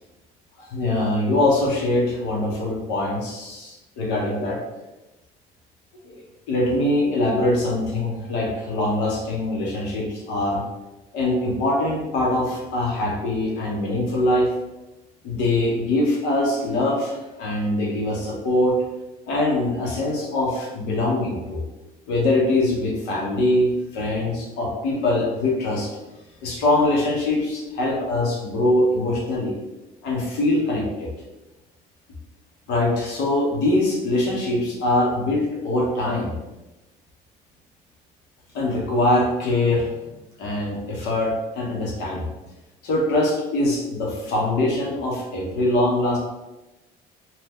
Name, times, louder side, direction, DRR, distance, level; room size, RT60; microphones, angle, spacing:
voice 1, 0.6-4.6 6.0-6.2 6.5-10.6 11.1-14.5 15.2-18.8 19.3-21.6 22.1-25.9 26.4-29.5 30.0-31.1 32.7-36.3 38.5-42.3 42.8-46.2, left 1 dB, 90° left, -2 dB, 1.0 m, -23 dB
2.9 x 2.3 x 3.4 m, 1.0 s
cardioid pair, 110°, 17 cm